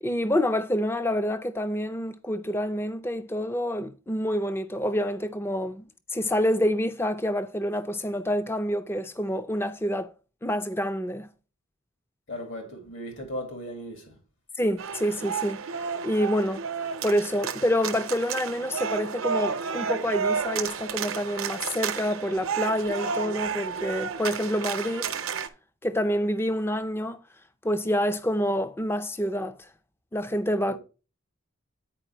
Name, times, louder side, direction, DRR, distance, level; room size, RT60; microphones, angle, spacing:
voice 1, 0.0-10.1 10.4-11.3 14.6-15.6 16.0-16.6 17.0-25.1 25.8-27.2 27.6-29.7 30.1-30.8, equal, 10° left, 0.4 m, -27 dB
voice 2, 12.3-14.2 30.7-30.8, equal, 65° left, 2.1 m, -37 dB
sound 1, 14.8-25.5, right 6 dB, 75° right, 0.7 m, -31 dB
9.0 x 4.6 x 4.4 m
head